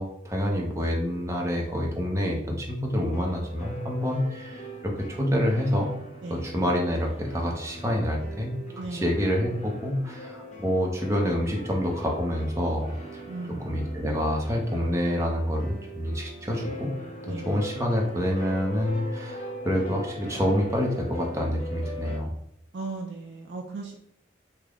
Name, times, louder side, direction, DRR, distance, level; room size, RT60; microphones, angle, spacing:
voice 1, 0.0-5.9 6.3-8.5 8.9-13.2 13.7-16.9 17.3-22.3, equal, 15° right, -1 dB, 0.6 m, -27 dB
sound 1, 3.1-22.2, equal, 35° left, 0.7 m, -41 dB
voice 2, 8.8-9.1 13.3-13.9 17.2-17.6 22.7-23.9, right 3 dB, 65° right, 2 dB, 0.4 m, -37 dB
3.4 x 2.1 x 3.5 m, 0.76 s
head